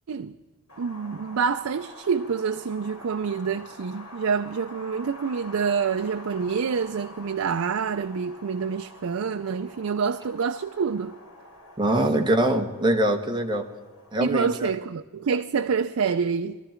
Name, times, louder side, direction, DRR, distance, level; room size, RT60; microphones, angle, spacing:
Wind, 0.7-14.7, left 1 dB, 80° left, 2.8 m, -47 dB
voice 1, 0.8-11.1 14.2-16.6, right 6 dB, 70° right, 0.5 m, -27 dB
voice 2, 11.8-13.7 14.1-14.7, right 1 dB, 20° right, 1.3 m, -23 dB
21.0 x 13.0 x 4.4 m
head